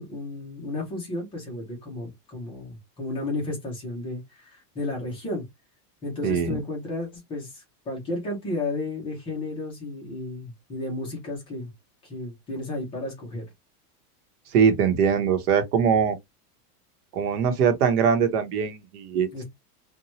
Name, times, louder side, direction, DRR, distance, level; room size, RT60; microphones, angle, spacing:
voice 1, 0.0-5.4 6.0-11.7 12.0-13.5 19.3-19.4, left 2 dB, 10° left, 0.5 m, -33 dB
voice 2, 6.2-6.6 14.5-16.2 17.1-19.3, right 7 dB, 70° right, 0.9 m, -22 dB
2.7 x 2.2 x 2.8 m
supercardioid pair, 175°, 47 cm